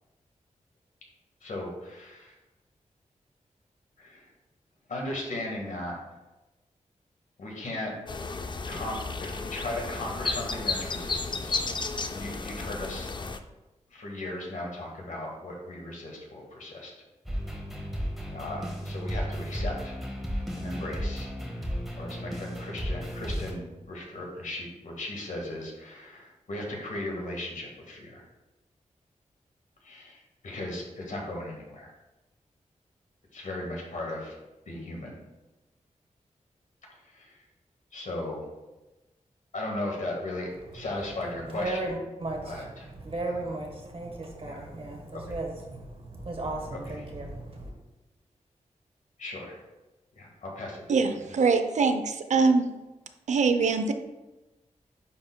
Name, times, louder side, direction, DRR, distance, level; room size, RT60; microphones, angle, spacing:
voice 1, 1.4-2.3 4.0-4.3 4.9-6.0 7.4-7.9 8.6-11.6 12.1-13.1 13.9-16.9 18.3-19.9 20.6-21.7 22.0-28.2 29.8-31.9 33.3-34.4 34.6-35.2 36.9-37.5 37.9-38.5 39.5-42.0 42.4-42.9 43.2-43.4 44.4-44.7 45.1-45.4 46.7-47.1 49.2-49.6 50.1-51.4, left 1 dB, 80° left, 1.6 m, -37 dB
sound 1, 8.1-13.4, left 4 dB, 35° left, 0.4 m, -33 dB
sound 2, 17.3-23.5, equal, ahead, 1.3 m, -34 dB
voice 2, 41.4-47.7, right 2 dB, 45° right, 1.2 m, -35 dB
voice 3, 50.9-52.6 53.3-53.9, right 4 dB, 65° right, 0.5 m, -23 dB
10.0 x 4.3 x 2.2 m
wide cardioid pair, 80°, 13 cm